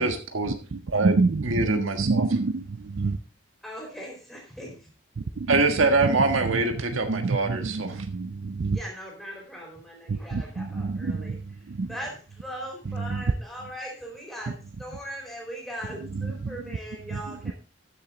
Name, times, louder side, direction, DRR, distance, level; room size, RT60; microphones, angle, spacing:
voice 1, 0.0-0.6 0.9-1.1 1.4-2.2 5.5-8.0, right 3 dB, 80° right, 6 dB, 1.5 m, -24 dB
voice 2, 0.7-3.2 5.2-5.6 6.0-6.2 7.1-8.8 10.1-11.9 12.9-13.2 16.0-16.8 17.1-17.5, right 3 dB, 55° right, 12 dB, 0.4 m, -28 dB
voice 3, 3.6-4.7 8.7-11.4 11.9-14.5 14.8-17.5, equal, ahead, -1 dB, 4.1 m, -39 dB
13.5 x 7.1 x 3.7 m, 0.34 s
head